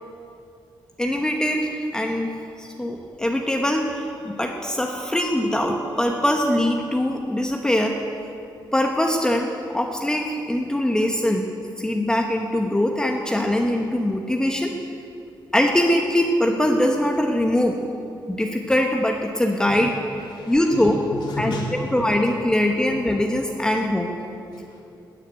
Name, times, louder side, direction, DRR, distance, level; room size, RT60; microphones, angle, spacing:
voice 1, 1.0-8.0 8.7-11.5 11.8-14.7 15.5-17.8 18.3-19.9 20.5-21.0 21.4-21.5 21.9-24.1, left 1 dB, 10° left, 2 dB, 1.0 m, -22 dB
voice 2, 20.1-20.8 21.1-22.3 22.9-23.0 24.5-24.8, left 1 dB, 70° left, -3 dB, 3.4 m, -33 dB
13.5 x 9.9 x 9.2 m, 2.7 s
cardioid pair, 130°, 8 cm